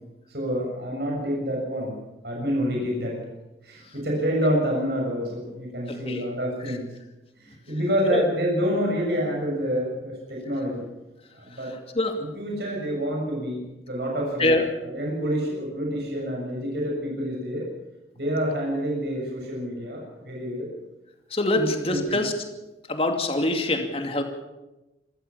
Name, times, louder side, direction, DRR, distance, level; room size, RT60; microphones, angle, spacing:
voice 1, 0.3-1.9 2.2-3.2 3.6-6.8 7.4-10.8 11.4-11.7 12.2-13.6 13.9-17.7 18.2-20.7 21.5-22.2, equal, 65° right, -1 dB, 7.1 m, -27 dB
voice 2, 5.9-6.2 8.1-8.2 11.9-12.2 14.4-14.7 21.3-22.3 22.9-24.2, left 2 dB, 35° left, 4 dB, 2.5 m, -24 dB
26.5 x 15.0 x 7.2 m, 1.0 s
head